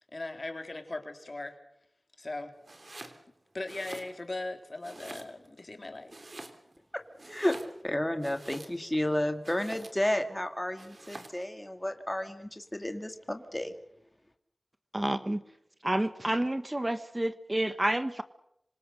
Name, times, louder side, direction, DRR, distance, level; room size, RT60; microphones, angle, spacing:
voice 1, 0.1-1.6 2.2-2.5 3.5-6.3, left 2 dB, 45° left, 5 dB, 3.5 m, -39 dB
Domestic sounds home sounds, 2.6-3.2 3.6-4.5 4.8-5.6 6.1-6.8 7.1-9.0 9.4-10.1 10.8-11.4, right 2 dB, 50° right, 3.3 m, -47 dB
voice 2, 7.3-7.6 7.8-13.7, left 1 dB, 15° left, 7 dB, 2.0 m, -31 dB
voice 3, 14.9-15.4 15.8-18.2, right 1 dB, 25° right, 11 dB, 1.1 m, -29 dB
26.5 x 25.5 x 6.7 m, 0.77 s
wide cardioid pair, 60°, 0 cm